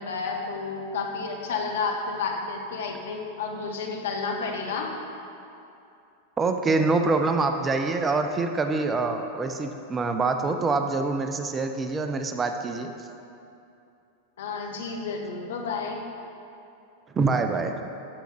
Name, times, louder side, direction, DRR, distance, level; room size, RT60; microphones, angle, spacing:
voice 1, 0.0-5.0 14.4-16.0, left 4 dB, 60° left, 1 dB, 1.1 m, -31 dB
voice 2, 6.4-12.9 17.1-17.8, right 3 dB, 20° right, 6 dB, 0.5 m, -25 dB
13.0 x 6.2 x 3.4 m, 2.7 s
figure-of-eight pair, 90°, 0 cm